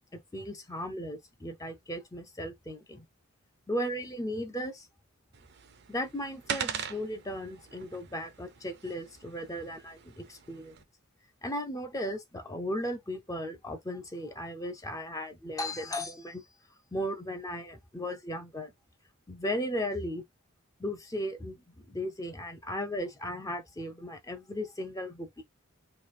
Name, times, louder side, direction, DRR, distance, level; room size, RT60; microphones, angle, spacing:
voice 1, 0.1-3.0 3.7-4.9 5.9-10.8 11.4-16.5 16.9-18.7 19.3-20.2 20.8-21.6 21.9-25.4, equal, 15° left, 0.4 m, -36 dB
sound 1, 5.3-10.8, right 7 dB, 50° right, 0.5 m, -41 dB
3.1 x 2.3 x 4.0 m
head